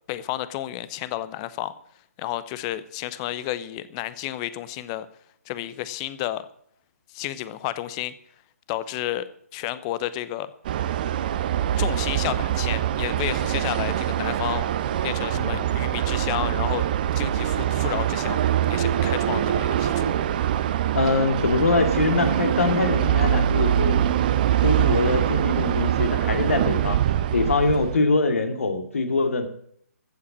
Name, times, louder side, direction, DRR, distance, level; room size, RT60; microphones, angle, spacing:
voice 1, 0.1-1.7 2.2-5.1 5.5-6.4 7.1-8.1 8.7-9.3 9.5-10.5 11.8-14.7 15.0-16.9 17.1-20.2, left 14 dB, 25° left, 16 dB, 0.8 m, -31 dB
sound 1, 10.6-28.0, right 11 dB, 35° right, 0.9 m, -24 dB
voice 2, 15.3-15.6 20.9-24.0 24.6-27.0 27.3-29.5, left 3 dB, 60° left, 6 dB, 2.3 m, -23 dB
14.5 x 8.4 x 7.5 m, 0.65 s
figure-of-eight pair, 135°, 8 cm